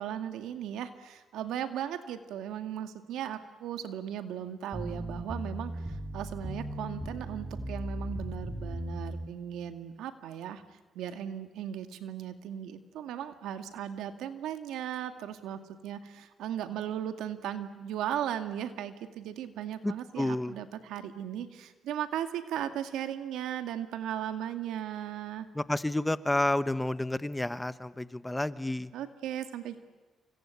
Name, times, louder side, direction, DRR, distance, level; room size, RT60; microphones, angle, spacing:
voice 1, 0.0-10.6 10.9-25.5 28.9-29.8, right 10 dB, 85° right, 8 dB, 2.0 m, -37 dB
sound 1, 4.7-9.3, right 1 dB, 15° right, 4.9 m, -37 dB
voice 2, 19.8-20.6 25.5-28.9, left 1 dB, 10° left, 14 dB, 1.1 m, -30 dB
28.5 x 25.0 x 8.4 m, 1.2 s
cardioid pair, 90°, 0 cm